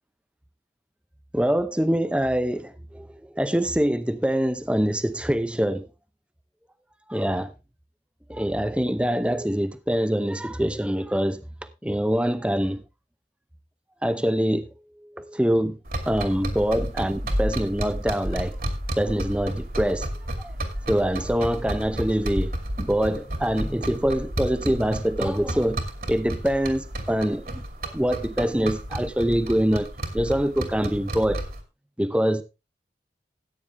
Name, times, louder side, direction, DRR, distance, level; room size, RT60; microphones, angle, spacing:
voice 1, 1.3-5.9 7.1-7.5 8.3-11.4 11.8-12.8 14.0-14.7 15.2-15.8 16.1-18.6 19.0-20.1 20.4-20.5 20.9-22.5 22.8-25.8 26.1-27.6 27.9-29.9 30.1-31.4 32.0-32.4, equal, 5° right, 0.7 m, -24 dB
sound 1, 15.9-31.6, right 1 dB, 55° right, 2.5 m, -32 dB
14.5 x 9.0 x 3.4 m
head